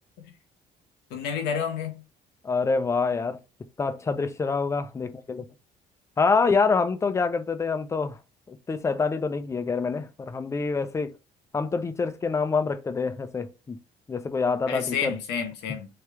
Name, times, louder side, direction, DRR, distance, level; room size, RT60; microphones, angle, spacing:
voice 1, 1.1-2.0 14.7-15.9, left 7 dB, 90° left, 0.8 m, -30 dB
voice 2, 2.4-3.4 3.8-5.5 6.2-8.2 8.5-11.1 11.5-13.8 14.1-15.1, left 4 dB, 15° left, 0.3 m, -26 dB
3.3 x 2.3 x 2.9 m
cardioid pair, 110°, 17 cm